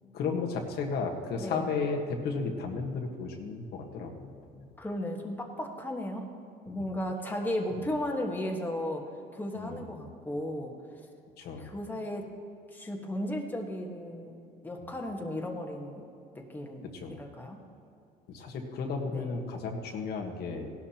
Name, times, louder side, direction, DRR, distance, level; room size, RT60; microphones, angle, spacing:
voice 1, 0.1-4.6 6.7-6.8 7.7-7.8 9.5-9.9 11.4-11.7 16.9-17.2 18.3-20.7, left 4 dB, 70° left, 1 dB, 1.5 m, -34 dB
voice 2, 4.8-6.3 6.6-9.0 9.3-10.7 11.6-12.3 12.7-16.0 16.3-17.6 19.1-19.3, left 1 dB, 10° left, 0 dB, 1.4 m, -35 dB
16.5 x 12.0 x 3.0 m, 2.6 s
cardioid pair, 110°, 17 cm